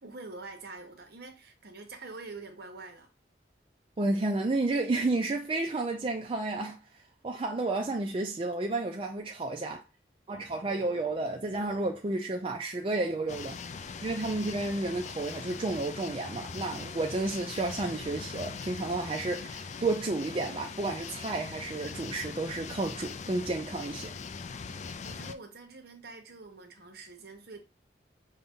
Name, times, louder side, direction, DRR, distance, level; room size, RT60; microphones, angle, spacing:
voice 1, 0.0-3.1 25.0-27.6, right 3 dB, 60° right, 1.0 m, -45 dB
voice 2, 4.0-6.8 7.2-9.8 10.3-13.6 14.0-24.1, right 2 dB, 30° right, 0.4 m, -31 dB
sound 1, 13.3-25.3, left 5 dB, 40° left, 0.3 m, -41 dB
5.5 x 2.2 x 3.6 m
head